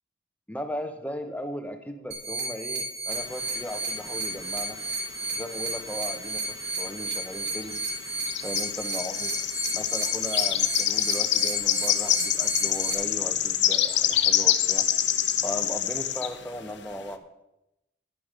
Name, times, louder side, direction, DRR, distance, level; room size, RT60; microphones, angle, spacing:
voice 1, 0.5-4.8 5.3-7.8 8.4-9.3 9.7-14.9 15.4-17.2, equal, 10° left, 6 dB, 1.0 m, -37 dB
sound 1, 2.1-12.9, right 2 dB, 60° right, 3.0 m, -33 dB
sound 2, 3.2-4.8 5.1-6.4 6.6-6.8 7.5-16.3, left 11 dB, 75° left, 1.0 m, -26 dB
11.5 x 9.5 x 5.3 m, 0.88 s
head